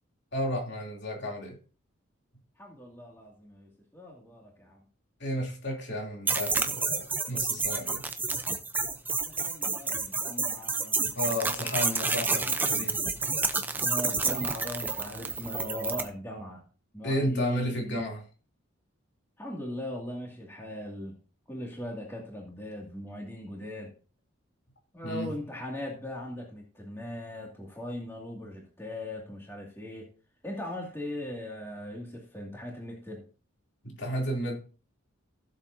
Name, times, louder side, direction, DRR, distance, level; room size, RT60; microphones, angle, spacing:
voice 1, 0.3-1.5 5.2-8.0 11.1-13.2 17.0-18.2 25.0-25.3 33.8-34.6, equal, 55° left, 0 dB, 3.2 m, -32 dB
voice 2, 2.6-4.8 9.2-11.8 13.8-16.6 16.9-18.0 19.4-21.2 21.5-23.9 24.9-30.1 30.4-33.3, left 1 dB, 10° left, -2 dB, 2.4 m, -39 dB
sound 1, 6.3-16.1, right 4 dB, 10° right, 0.7 m, -29 dB
16.0 x 7.6 x 2.8 m, 0.37 s
head